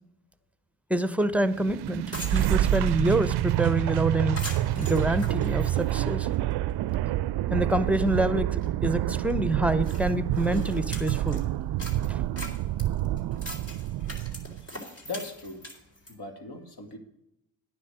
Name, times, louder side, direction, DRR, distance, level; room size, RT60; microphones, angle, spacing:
voice 1, 0.9-2.1 2.3-4.4 4.8-6.3 7.5-11.4 12.1-12.2, right 1 dB, 5° right, 13 dB, 0.9 m, -26 dB
sound 1, 1.2-1.3 1.7-1.8 2.0-3.0 3.5-3.6 3.9-4.0 4.3-6.5 6.9-7.0 7.6-7.7 7.9-8.2 8.6-8.7 9.3-9.4 9.8-11.4 11.8-16.1, left 1 dB, 30° left, 4.2 m, -42 dB
sound 2, 1.5-14.6, right 13 dB, 60° right, 0.5 m, -28 dB
voice 2, 15.0-15.7 16.1-17.0, left 3 dB, 55° left, 5 dB, 2.5 m, -39 dB
9.9 x 6.1 x 8.1 m, 0.80 s
supercardioid pair, 50°, 47 cm